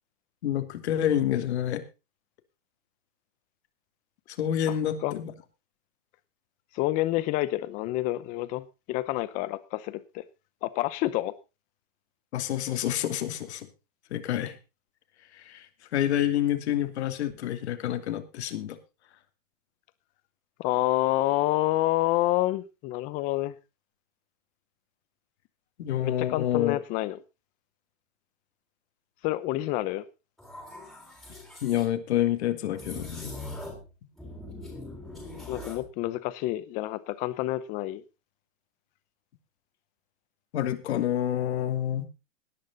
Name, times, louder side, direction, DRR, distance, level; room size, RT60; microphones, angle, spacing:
voice 1, 0.4-1.8 4.4-5.3 12.3-13.7 14.1-14.5 15.5-15.7 15.9-18.8 25.8-26.8 31.6-33.3 40.5-42.1, left 11 dB, 55° left, 8 dB, 2.9 m, -28 dB
voice 2, 6.7-10.2 10.6-11.3 20.6-23.5 26.0-27.2 29.2-30.0 35.5-38.0, left 16 dB, 20° left, 15 dB, 0.8 m, -28 dB
sound 1, 30.4-31.9 32.7-33.9 34.2-35.9, left 2 dB, ahead, 3.6 m, -41 dB
18.0 x 10.5 x 4.0 m, 0.29 s
supercardioid pair, 170°, 38 cm